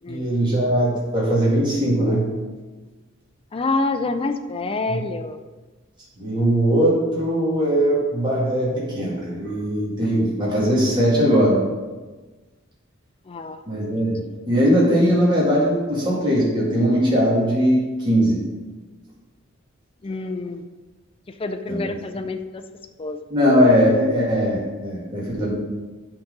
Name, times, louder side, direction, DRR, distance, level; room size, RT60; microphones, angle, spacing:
voice 1, 0.1-2.3 4.9-5.0 6.2-11.6 13.7-18.4 21.7-21.9 23.3-25.5, equal, 25° right, -7 dB, 2.1 m, -20 dB
voice 2, 3.5-5.4 13.3-13.6 14.0-14.2 20.0-20.6 21.4-22.6 23.0-23.2, left 3 dB, 25° left, 8 dB, 0.4 m, -27 dB
8.5 x 3.9 x 5.3 m, 1.3 s
head